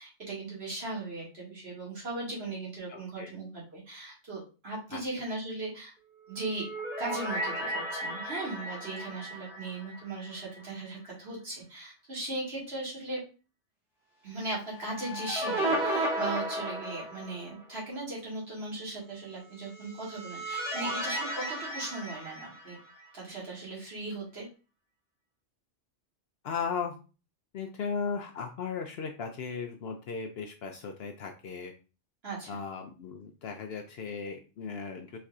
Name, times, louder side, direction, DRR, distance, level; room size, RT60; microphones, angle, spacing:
voice 1, 0.0-5.9 6.3-6.7 7.0-13.2 14.2-22.8 23.1-24.5 32.2-32.6, right 2 dB, 55° right, -5 dB, 1.9 m, -38 dB
voice 2, 2.9-3.3 4.9-5.0 26.4-27.0 27.5-31.7 32.5-35.2, left 5 dB, 65° left, 4 dB, 0.7 m, -36 dB
sound 1, 6.3-10.6 10.9-11.0 14.5-17.6 19.7-23.1, right 1 dB, 35° right, 1.9 m, -34 dB
4.2 x 3.3 x 2.4 m, 0.33 s
omnidirectional pair, 1.3 m